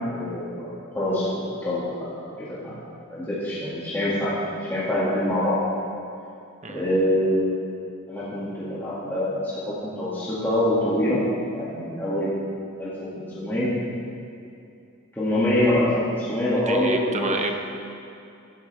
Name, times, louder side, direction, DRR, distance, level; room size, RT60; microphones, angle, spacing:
voice 1, 0.1-1.3 1.6-2.8 3.1-4.4 4.6-5.6 6.7-7.5 8.1-11.2 11.5-12.5 12.8-12.9 13.2-13.7 15.1-17.4, left 1 dB, 10° left, -12 dB, 2.3 m, -25 dB
voice 2, 16.7-17.6, right 3 dB, 35° right, 4 dB, 1.0 m, -29 dB
15.5 x 11.5 x 3.5 m, 2.5 s
head